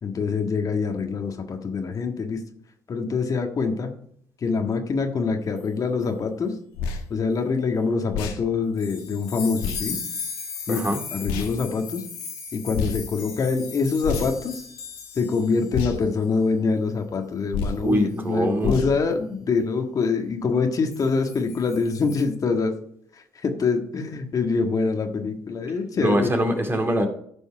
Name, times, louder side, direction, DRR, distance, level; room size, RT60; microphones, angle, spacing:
voice 1, 0.0-2.4 2.9-3.9 4.4-6.5 7.1-10.0 10.7-10.8 11.1-12.0 12.5-14.6 15.1-22.7 23.1-26.3, left 4 dB, 40° left, 1.6 m, -25 dB
sound 1, 6.7-7.0 8.1-8.4 9.6-9.8 11.2-11.5 12.7-13.0 14.0-14.4 15.7-16.0 17.5-17.8 18.6-18.9, left 5 dB, 70° left, 1.4 m, -28 dB
sound 2, 8.8-15.7 16.0-16.2 17.6-17.9 20.9-22.2, left 6 dB, 90° left, 4.5 m, -37 dB
voice 2, 10.7-11.0 17.8-18.8 26.0-27.1, right 1 dB, 25° right, 2.2 m, -23 dB
15.0 x 5.4 x 4.8 m
hypercardioid pair, 60°, 9 cm